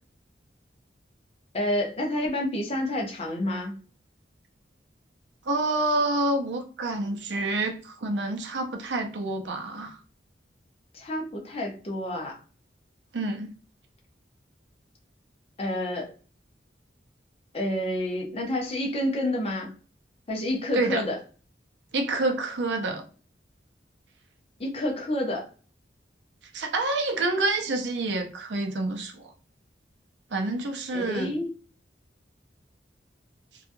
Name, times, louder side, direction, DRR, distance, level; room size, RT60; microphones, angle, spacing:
voice 1, 1.5-3.8 10.9-12.4 15.6-16.1 17.5-19.7 20.3-21.2 24.6-25.5 30.9-31.5, left 1 dB, 35° left, 0 dB, 0.6 m, -29 dB
voice 2, 5.5-10.0 13.1-13.5 20.7-21.0 21.9-23.0 26.5-29.3 30.3-31.3, right 2 dB, 75° right, 3 dB, 0.6 m, -28 dB
2.8 x 2.3 x 2.5 m, 0.38 s
head